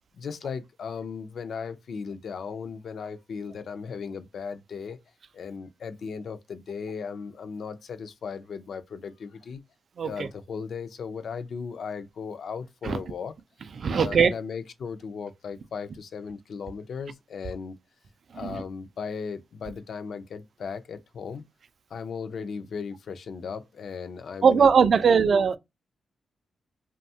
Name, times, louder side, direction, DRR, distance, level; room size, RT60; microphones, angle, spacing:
voice 1, 0.1-5.0 5.3-9.6 10.0-13.3 13.9-17.8 18.3-21.4 21.9-25.3, left 6 dB, 60° left, 0.4 m, -37 dB
voice 2, 10.0-10.3 12.8-13.0 13.8-14.3 18.4-18.6 24.4-25.6, right 6 dB, 50° right, 0.3 m, -20 dB
2.6 x 2.2 x 2.7 m
wide cardioid pair, 120°, 0 cm